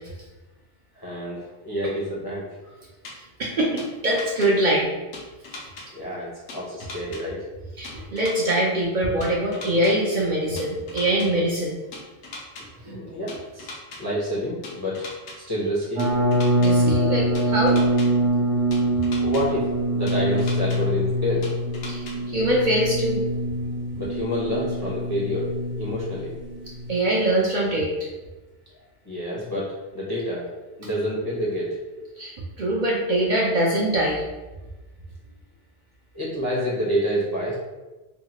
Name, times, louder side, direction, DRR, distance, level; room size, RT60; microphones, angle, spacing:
voice 1, 0.9-2.5 5.9-7.4 12.9-15.0 15.5-16.0 19.2-21.5 22.2-22.3 24.0-25.5 25.8-26.3 29.0-30.5 30.8-31.8 36.1-37.5, equal, 30° left, -7 dB, 0.5 m, -28 dB
sound 1, 3.0-3.1 3.8-4.5 5.1-5.9 6.5-7.2 7.8-8.6 9.2-9.9 10.6-11.3 11.9-12.6 13.3-14.0 14.6-15.4 16.0-16.7 17.3-18.1 18.7-19.4 20.1-20.8 21.4-22.1, left 3 dB, 90° left, 0.9 m, -38 dB
voice 2, 3.4-4.9 7.8-11.7 12.8-13.0 16.6-17.8 21.9-23.2 26.9-28.1 32.2-34.2, right 1 dB, 60° right, -4 dB, 0.5 m, -23 dB
sound 2, 16.0-26.9, right 1 dB, 80° right, 1.0 m, -24 dB
2.8 x 2.3 x 2.8 m, 1.1 s
omnidirectional pair, 1.1 m